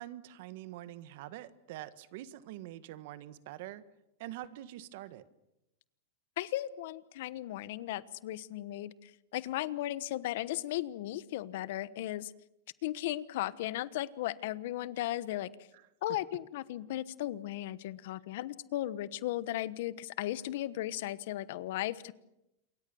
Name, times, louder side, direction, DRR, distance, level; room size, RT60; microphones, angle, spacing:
voice 1, 0.0-3.8 4.2-5.2, right 14 dB, 65° right, 14 dB, 1.5 m, -45 dB
voice 2, 6.4-12.3 12.8-15.5 16.0-22.1, left 14 dB, 70° left, 17 dB, 1.1 m, -36 dB
27.5 x 23.5 x 7.1 m, 0.90 s
supercardioid pair, 130°, 0 cm